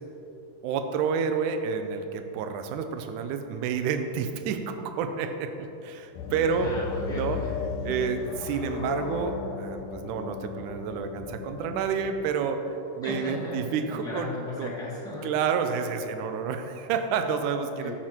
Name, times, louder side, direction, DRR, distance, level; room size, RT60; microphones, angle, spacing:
voice 1, 0.6-6.7 7.1-7.4 7.8-14.7 15.2-17.9, right 6 dB, 80° right, 7 dB, 2.1 m, -29 dB
sound 1, 6.2-12.4, left 5 dB, 85° left, 2.2 m, -36 dB
voice 2, 6.5-7.5 7.9-8.1 13.0-13.6 14.0-15.3 17.8-17.9, left 2 dB, 5° left, -6 dB, 0.7 m, -36 dB
13.0 x 5.9 x 4.4 m, 3.0 s
omnidirectional pair, 3.7 m